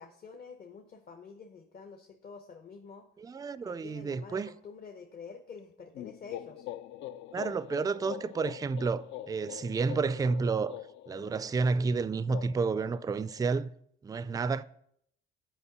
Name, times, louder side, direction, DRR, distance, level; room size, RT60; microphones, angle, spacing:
voice 1, 0.0-3.1 3.6-6.7, left 5 dB, 50° left, 0.9 m, -48 dB
voice 2, 3.2-4.5 7.3-10.8 11.1-13.7 14.0-14.6, right 4 dB, 20° right, 0.3 m, -30 dB
sound 1, 5.9-13.7, left 13 dB, 70° left, 0.4 m, -44 dB
7.1 x 4.8 x 6.6 m
cardioid pair, 90°, 20 cm